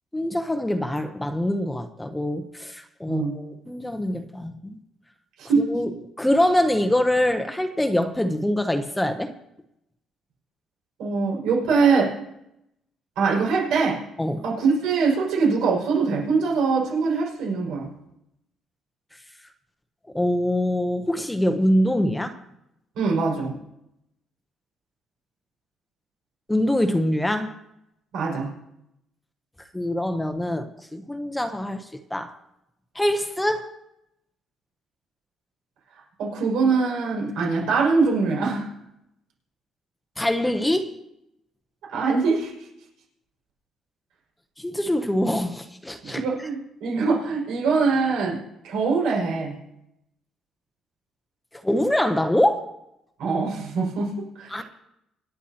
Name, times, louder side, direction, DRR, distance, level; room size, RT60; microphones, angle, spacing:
voice 1, 0.1-4.8 5.6-9.3 14.2-14.4 20.1-22.4 26.5-27.6 29.7-31.8 32.1-32.3 32.9-33.7 40.2-41.0 44.6-46.2 51.6-52.7 54.5-54.6, left 1 dB, 5° left, 0.8 m, -24 dB
voice 2, 5.4-5.7 11.0-12.2 13.2-14.0 14.4-17.9 23.0-23.5 28.1-28.5 36.2-38.7 41.9-42.5 46.0-49.5 53.2-54.6, right 4 dB, 85° right, 5.7 m, -23 dB
26.0 x 10.0 x 2.9 m
cardioid pair, 135°, 0 cm